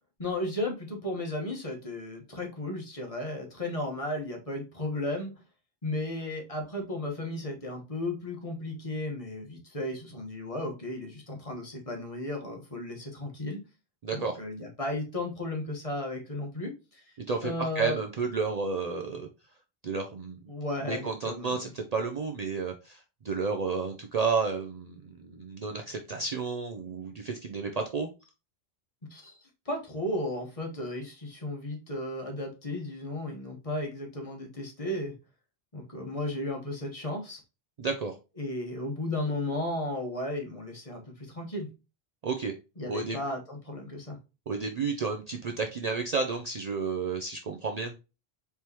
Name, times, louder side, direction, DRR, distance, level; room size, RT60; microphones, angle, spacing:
voice 1, 0.2-5.4 5.8-13.6 14.1-17.0 17.4-18.0 20.5-21.7 29.1-35.1 35.7-37.4 38.4-41.7 42.8-44.2, left 1 dB, 35° left, 1 dB, 1.3 m, -34 dB
voice 2, 14.0-14.4 17.3-19.3 19.8-20.4 20.8-28.1 37.8-38.2 42.2-42.5 42.9-43.2 44.5-47.9, right 4 dB, 50° right, 4 dB, 0.5 m, -31 dB
4.5 x 3.4 x 2.8 m, 0.29 s
omnidirectional pair, 1.0 m